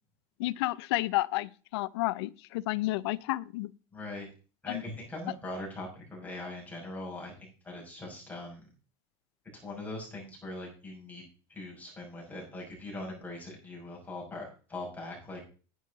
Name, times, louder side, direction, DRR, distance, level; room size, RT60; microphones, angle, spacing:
voice 1, 0.4-3.7 4.7-4.8, left 19 dB, 80° left, 0.5 m, -31 dB
voice 2, 3.9-4.3 4.6-8.6 9.6-11.2 11.5-15.5, left 2 dB, 10° left, 6.0 m, -41 dB
10.0 x 9.3 x 3.9 m
supercardioid pair, 130°, 13 cm